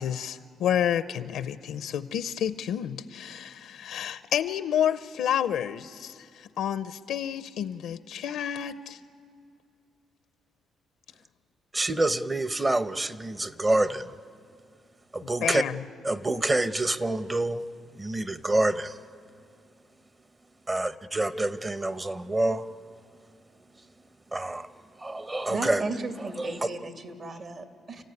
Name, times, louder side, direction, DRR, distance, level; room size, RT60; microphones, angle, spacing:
voice 1, 0.0-9.0 15.2-15.8, left 9 dB, 80° left, 13 dB, 0.6 m, -30 dB
voice 2, 11.7-14.1 15.1-15.6 16.0-17.6 17.9-19.0 20.7-22.7 24.3-24.7 25.0-25.8 26.4-26.6, right 2 dB, 20° right, 13 dB, 0.8 m, -27 dB
voice 3, 25.5-28.0, right 3 dB, 55° right, 5 dB, 2.2 m, -35 dB
29.5 x 14.5 x 9.7 m, 2.3 s
cardioid pair, 90°, 0 cm